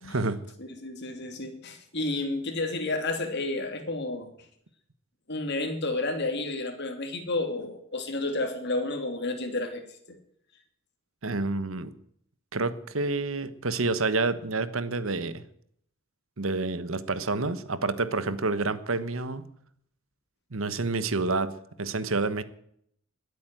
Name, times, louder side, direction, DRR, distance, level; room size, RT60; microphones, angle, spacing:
voice 1, 0.0-0.4 11.2-11.9 12.5-15.4 16.4-19.5 20.5-21.5 21.8-22.4, right 3 dB, 80° right, 13 dB, 1.3 m, -28 dB
voice 2, 0.6-4.3 5.3-9.8, left 2 dB, 55° left, 5 dB, 3.0 m, -31 dB
21.5 x 8.4 x 7.8 m, 0.69 s
head